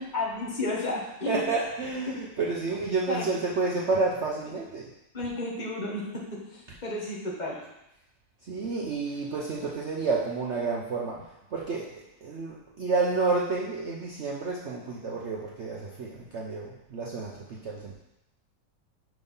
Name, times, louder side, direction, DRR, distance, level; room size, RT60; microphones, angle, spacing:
voice 1, 0.1-1.4 2.1-2.2 3.1-3.2 5.1-6.2 6.5-7.6, left 2 dB, 25° left, -4 dB, 1.2 m, -32 dB
voice 2, 1.3-4.9 8.4-11.2 11.5-11.8 12.2-17.9, right 3 dB, 60° right, -3 dB, 0.7 m, -30 dB
5.4 x 4.7 x 5.4 m, 0.89 s
omnidirectional pair, 2.0 m